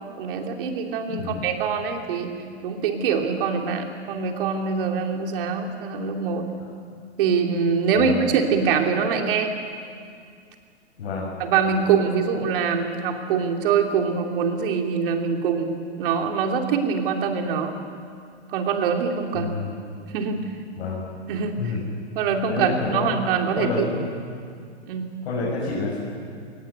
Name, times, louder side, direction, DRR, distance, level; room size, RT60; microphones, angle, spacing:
voice 1, 0.2-2.3 2.6-6.5 7.2-9.5 11.4-17.7 18.5-19.5 20.1-20.4 21.3-21.6 22.1-23.8 24.9-25.1, right 6 dB, 50° right, 3 dB, 3.0 m, -24 dB
voice 2, 1.1-1.4 8.0-8.2 11.0-11.3 19.3-19.7 20.8-21.0 21.6-21.8 22.5-23.1 23.5-24.0 25.2-26.0, left 3 dB, 65° left, -5 dB, 6.3 m, -28 dB
22.5 x 19.0 x 8.1 m, 2.2 s
hypercardioid pair, 135°, 35 cm